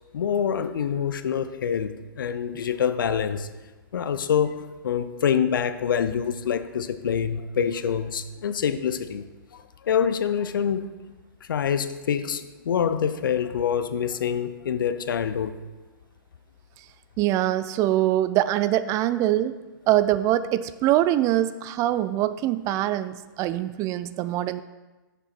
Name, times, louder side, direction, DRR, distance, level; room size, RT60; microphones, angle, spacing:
voice 1, 0.1-3.5 3.9-9.2 9.5-10.9 11.5-15.6, left 8 dB, 70° left, 12 dB, 0.6 m, -26 dB
voice 2, 17.2-19.6 19.9-24.6, right 13 dB, 30° right, 14 dB, 0.4 m, -23 dB
9.8 x 6.8 x 4.4 m, 1.2 s
hypercardioid pair, 120°, 11 cm